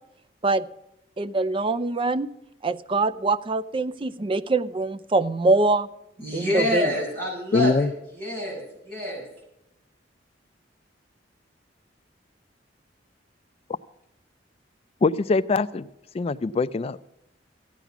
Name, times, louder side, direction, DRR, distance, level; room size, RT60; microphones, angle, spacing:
voice 1, 1.2-2.3 2.6-5.9 6.3-6.9, right 3 dB, 30° right, 13 dB, 0.5 m, -24 dB
voice 2, 6.2-9.2, left 1 dB, 55° right, -3 dB, 6.5 m, -27 dB
voice 3, 7.5-7.9 15.0-15.9 16.1-17.2, left 3 dB, 35° left, 15 dB, 0.3 m, -23 dB
14.5 x 9.2 x 5.9 m, 0.87 s
head